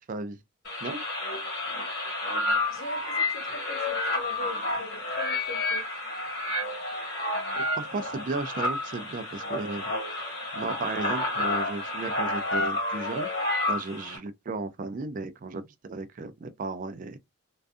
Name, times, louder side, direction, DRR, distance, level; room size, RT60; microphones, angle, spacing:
voice 1, 0.1-0.4 0.8-1.0 7.5-10.3 10.5-13.3 13.7-17.2, right 3 dB, 40° right, 0.3 m, -35 dB
sound 1, 0.6-14.2, left 2 dB, 50° left, 1.0 m, -30 dB
voice 2, 2.7-5.9, left 1 dB, 75° left, 0.7 m, -41 dB
2.5 x 2.3 x 2.3 m
head